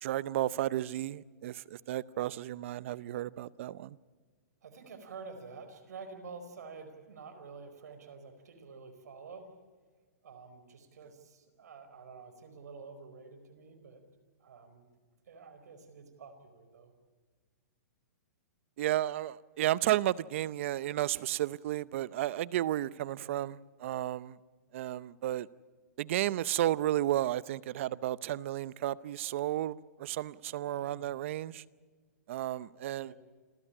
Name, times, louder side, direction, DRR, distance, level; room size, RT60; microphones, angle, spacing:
voice 1, 0.0-4.0 18.8-24.4 24.7-25.5 26.0-31.6 32.3-33.1, right 13 dB, 50° right, 0.7 m, -33 dB
voice 2, 4.6-9.5 10.2-14.0 14.4-14.9 15.3-16.9 23.1-23.5 30.6-31.1 33.0-33.1, right 4 dB, 75° right, 4.6 m, -49 dB
28.0 x 14.0 x 9.9 m
hypercardioid pair, 155°, 9 cm